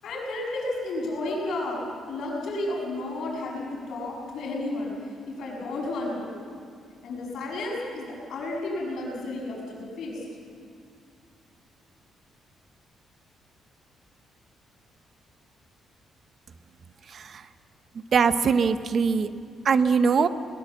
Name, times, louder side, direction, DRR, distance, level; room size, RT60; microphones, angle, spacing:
voice 1, 0.0-4.9 5.3-6.4 7.0-10.2, left 2 dB, 60° left, -2 dB, 6.9 m, -32 dB
voice 2, 18.1-19.3 19.6-20.3, right 5 dB, 40° right, 11 dB, 0.8 m, -21 dB
21.5 x 20.5 x 7.5 m, 2.4 s
cardioid pair, 170°, 0 cm